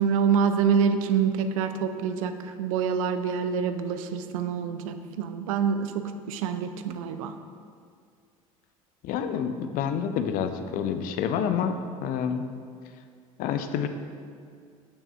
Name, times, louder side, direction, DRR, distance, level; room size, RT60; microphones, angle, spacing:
voice 1, 0.0-7.3, right 6 dB, 70° right, 9 dB, 0.4 m, -26 dB
voice 2, 9.0-12.4 13.4-13.9, left 7 dB, 50° left, 8 dB, 0.5 m, -28 dB
6.3 x 6.1 x 3.3 m, 2.2 s
hypercardioid pair, 65°, 18 cm